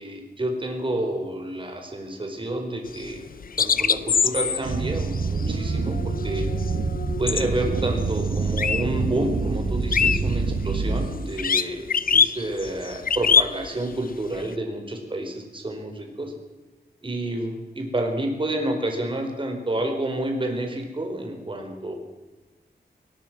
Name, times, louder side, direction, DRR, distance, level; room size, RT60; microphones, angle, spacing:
voice 1, 0.0-3.2 3.6-6.5 7.2-16.3 17.0-21.9, right 1 dB, 30° right, 4 dB, 4.6 m, -29 dB
sound 1, 2.9-9.0 9.3-14.5, left 6 dB, 60° left, 0.7 m, -25 dB
sound 2, 4.6-11.1, right 4 dB, 70° right, 1.7 m, -26 dB
22.5 x 19.5 x 6.2 m, 1.2 s
wide cardioid pair, 140°, 17 cm